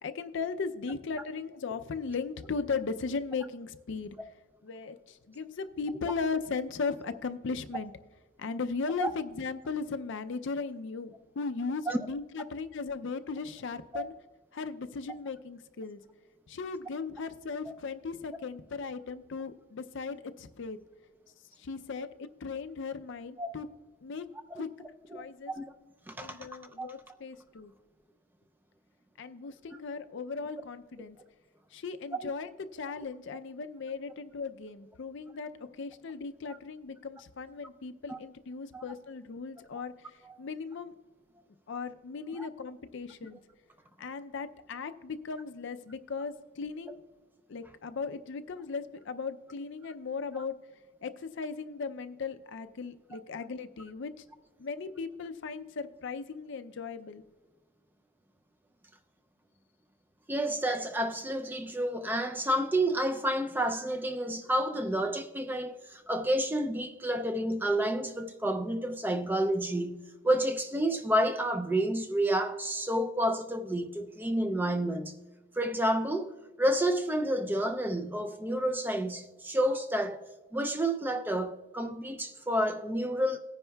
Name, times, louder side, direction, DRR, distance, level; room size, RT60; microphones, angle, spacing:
voice 1, 0.0-4.3 4.6-7.9 8.4-14.1 14.5-16.0 16.5-20.8 21.6-22.1 22.4-23.7 24.0-24.3 24.5-24.7 25.1-25.5 26.2-27.7 29.2-31.2 31.7-40.9 41.7-43.4 44.0-47.0 47.5-50.5 51.0-54.2 54.6-57.2, left 4 dB, 55° left, 0.5 m, -37 dB
voice 2, 26.1-26.4 26.8-26.9 38.1-38.2 38.7-38.8 42.4-42.5 60.3-75.1 75.5-80.2 80.5-83.4, right 1 dB, 10° right, 0.4 m, -30 dB
18.5 x 9.8 x 2.3 m
head